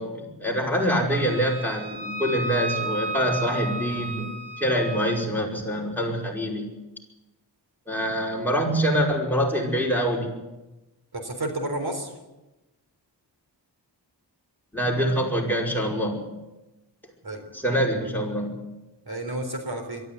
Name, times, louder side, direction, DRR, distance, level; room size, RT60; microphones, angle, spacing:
voice 1, 0.0-6.7 7.9-10.3 14.7-16.3 17.5-18.6, equal, 5° left, -1 dB, 5.2 m, -25 dB
Wind instrument woodwind instrument, 1.1-5.1, right 1 dB, 35° right, 7.7 m, -33 dB
voice 2, 11.1-12.1 17.2-17.5 19.1-20.0, right 1 dB, 60° right, 6 dB, 3.9 m, -31 dB
23.0 x 13.5 x 9.4 m, 1.0 s
wide cardioid pair, 85°, 43 cm